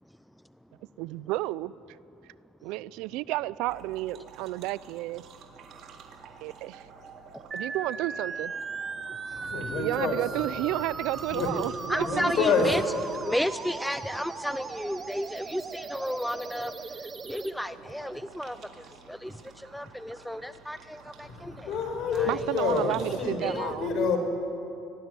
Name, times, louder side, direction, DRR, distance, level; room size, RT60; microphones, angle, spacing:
voice 1, 1.0-1.7 2.6-5.2 6.4-6.9 7.5-8.5 9.5-12.5 22.3-23.9, right 17 dB, 75° right, 20 dB, 0.5 m, -32 dB
sound 1, 3.7-23.6, right 6 dB, 50° right, 3.4 m, -51 dB
sound 2, 7.5-17.5, right 4 dB, 25° right, 1.1 m, -38 dB
voice 2, 9.3-10.2 11.3-11.5 12.0-12.7 21.2-24.2, left 5 dB, 55° left, 6 dB, 5.3 m, -28 dB
voice 3, 11.9-12.8 13.2-16.7 17.3-18.6 19.1-19.3 19.7-21.7 22.1-22.5 23.4-23.7, equal, ahead, 13 dB, 0.6 m, -32 dB
24.0 x 19.0 x 9.7 m, 2.8 s
supercardioid pair, 100°, 0 cm